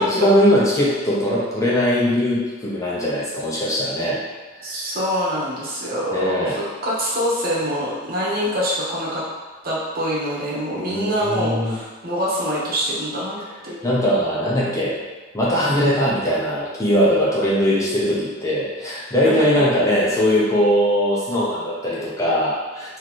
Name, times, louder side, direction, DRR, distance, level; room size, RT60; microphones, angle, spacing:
voice 1, 0.0-4.2 4.6-4.7 6.1-6.6 10.7-11.7 13.8-14.9 15.3-23.0, equal, 15° left, -7 dB, 0.8 m, -20 dB
voice 2, 4.6-9.2 9.6-13.9, equal, 45° right, -7 dB, 1.2 m, -25 dB
3.2 x 3.0 x 4.2 m, 1.2 s
head